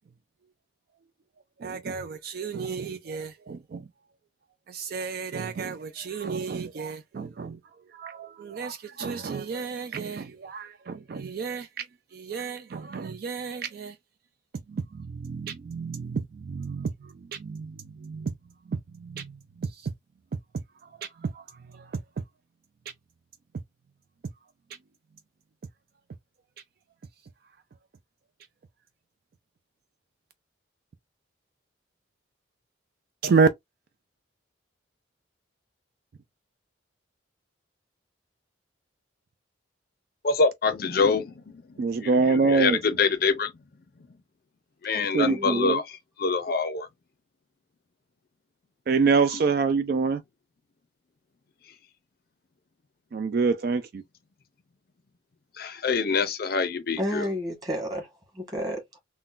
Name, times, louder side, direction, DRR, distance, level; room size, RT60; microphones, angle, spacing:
voice 1, 1.6-3.9 4.7-14.0 14.7-19.9 20.3-22.2 24.7-24.8 33.2-33.5 41.8-42.8 45.1-45.8 48.9-50.2 53.1-54.0, right 4 dB, 50° right, 0.3 m, -28 dB
voice 2, 40.2-41.6 42.5-42.7 43.0-43.5 44.8-45.8 46.2-46.9 55.6-57.3, left 4 dB, 50° left, 0.5 m, -25 dB
voice 3, 44.9-45.7 57.0-58.1 58.3-58.8, equal, 20° right, 1.4 m, -31 dB
3.8 x 2.1 x 2.4 m
head